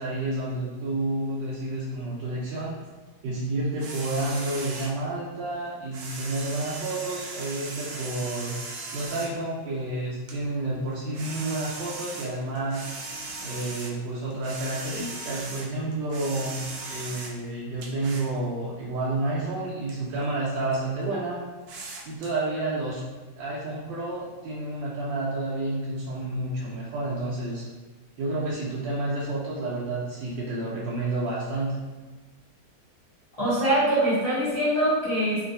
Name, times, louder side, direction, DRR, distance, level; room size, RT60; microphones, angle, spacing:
voice 1, 0.0-2.7 3.2-8.6 8.9-12.9 13.4-21.4 22.1-23.0 23.4-27.6 28.2-31.8, right 2 dB, 90° right, -6 dB, 1.3 m, -30 dB
sound 1, 3.8-5.0 5.7-9.4 10.3-10.4 10.9-14.0 14.3-17.4 17.8-18.3 19.2-19.3 19.9-20.2 20.7-20.8 21.7-22.3, right 3 dB, 70° right, 0.9 m, -38 dB
voice 2, 33.4-35.4, right 1 dB, 80° left, -11 dB, 0.3 m, -23 dB
3.1 x 2.5 x 2.6 m, 1.2 s
omnidirectional pair, 1.9 m